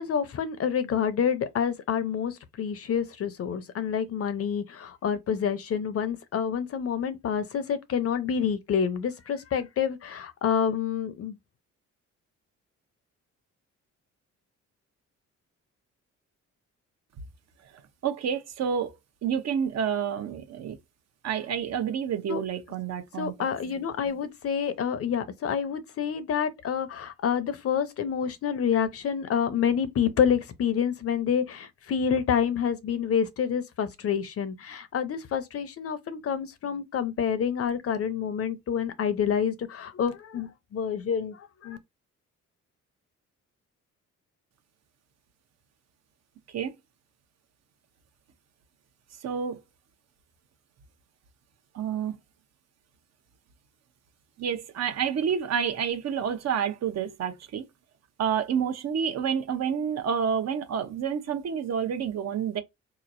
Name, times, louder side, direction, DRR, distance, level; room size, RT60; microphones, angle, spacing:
voice 1, 0.0-11.4 22.3-22.4 23.2-41.8, left 7 dB, 50° left, 0.7 m, -28 dB
voice 2, 18.0-18.9 19.2-20.8 21.2-23.4 46.5-46.7 49.2-49.6 51.7-52.2 54.4-57.6 58.2-62.6, right 7 dB, 60° right, 0.8 m, -29 dB
4.0 x 3.0 x 2.6 m
cardioid pair, 90°, 30 cm